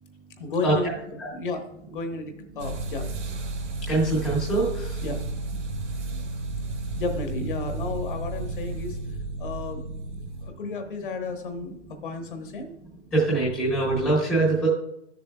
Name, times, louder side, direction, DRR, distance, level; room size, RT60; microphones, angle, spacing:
voice 1, 0.4-3.1 5.0-5.2 6.1-6.2 7.0-9.0 9.4-9.9 10.4-12.7, left 3 dB, 45° left, 5 dB, 1.1 m, -33 dB
sound 1, 2.6-10.5, right 2 dB, 80° right, 1.8 m, -32 dB
voice 2, 3.9-5.0 13.1-14.7, right 2 dB, 5° left, -8 dB, 0.6 m, -23 dB
12.0 x 6.8 x 2.3 m, 0.79 s
hypercardioid pair, 170°, 35 cm